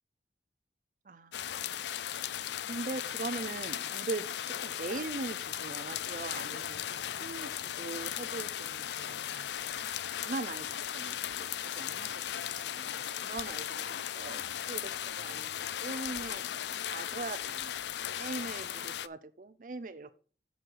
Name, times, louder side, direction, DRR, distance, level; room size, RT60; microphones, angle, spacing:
voice 1, 1.0-1.8 2.7-4.3 4.6-9.4 10.2-16.5 16.9-17.8 18.2-20.1, right 3 dB, 45° right, 13 dB, 0.5 m, -41 dB
sound 1, 1.3-19.1, left 10 dB, 75° left, 0.4 m, -37 dB
7.8 x 7.6 x 4.6 m, 0.40 s
head